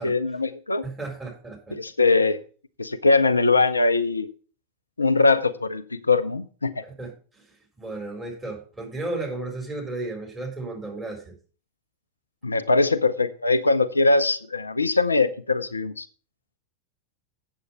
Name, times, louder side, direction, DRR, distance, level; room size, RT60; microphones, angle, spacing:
voice 1, 0.0-0.8 1.7-2.4 2.8-4.3 5.0-6.8 12.4-16.1, left 3 dB, 80° left, 11 dB, 0.6 m, -21 dB
voice 2, 0.8-1.8 6.8-7.4 7.8-11.3, right 2 dB, 15° right, 0 dB, 4.5 m, -34 dB
8.2 x 7.2 x 6.1 m, 0.39 s
figure-of-eight pair, 90°, 0 cm